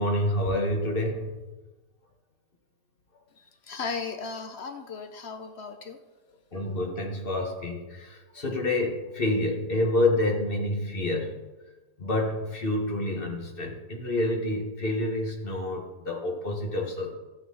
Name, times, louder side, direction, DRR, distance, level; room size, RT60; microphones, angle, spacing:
voice 1, 0.0-1.3 6.5-11.3 12.0-17.1, left 1 dB, 30° left, 1 dB, 1.7 m, -28 dB
voice 2, 3.3-6.0, left 5 dB, 50° left, 5 dB, 0.9 m, -36 dB
14.0 x 9.1 x 4.0 m, 1.2 s
omnidirectional pair, 2.0 m